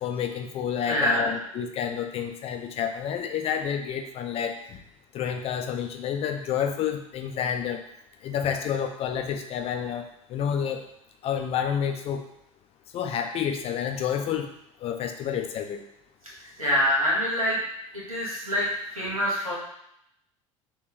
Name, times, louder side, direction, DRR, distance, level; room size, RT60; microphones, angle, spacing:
voice 1, 0.0-4.8 5.1-7.8 8.2-10.8 11.2-12.2 12.9-14.5 14.8-15.8, left 8 dB, 35° left, 5 dB, 0.5 m, -29 dB
voice 2, 0.9-1.4 16.4-17.6 17.9-19.5, equal, 90° right, -7 dB, 1.2 m, -25 dB
3.1 x 3.0 x 3.9 m, 0.76 s
figure-of-eight pair, 65°, 17 cm